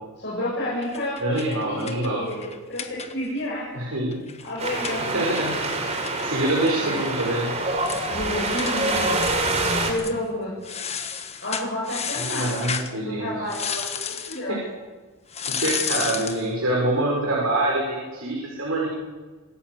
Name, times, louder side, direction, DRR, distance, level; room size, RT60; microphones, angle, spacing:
voice 1, 0.2-3.7 4.4-5.1 6.8-7.0 8.1-9.2 9.9-10.5 11.4-12.5 13.1-14.6, left 1 dB, 50° left, -5 dB, 7.9 m, -30 dB
sound 1, 0.8-3.5 3.8-3.9 4.1-7.3 7.6-7.7 7.9-8.1 8.6-8.8 9.2-9.6 9.9-10.2 10.6-12.9 13.5-14.4 15.3-16.5, left 7 dB, 30° left, 1.5 m, -32 dB
voice 2, 1.2-2.2 3.7-4.2 5.0-5.8 6.2-7.5 12.2-13.3 14.5-14.6 15.5-18.9, right 1 dB, 70° right, -3 dB, 6.3 m, -25 dB
Wind, 4.6-9.9, right 2 dB, 30° right, 3.8 m, -26 dB
27.0 x 15.5 x 8.3 m, 1.3 s
head